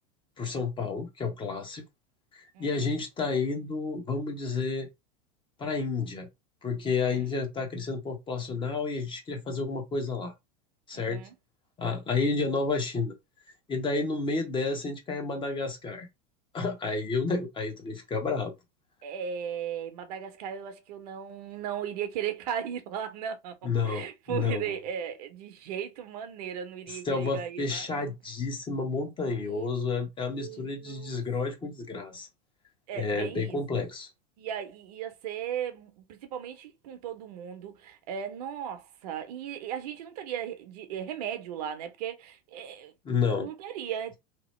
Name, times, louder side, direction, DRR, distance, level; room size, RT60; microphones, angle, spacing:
voice 1, 0.4-1.8 2.3-4.9 5.6-6.3 6.6-10.3 10.9-11.2 11.8-13.1 13.7-16.1 16.5-18.5 23.6-24.6 27.1-32.3 32.9-34.1 43.0-43.5, left 4 dB, 25° left, 0.9 m, -30 dB
voice 2, 2.5-2.9 7.0-7.3 10.9-11.3 19.0-28.1 29.2-29.9 30.4-31.2 32.9-33.8 34.4-42.9 43.4-44.2, right 9 dB, 70° right, 0.8 m, -37 dB
2.9 x 2.0 x 3.1 m
hypercardioid pair, 105°, 21 cm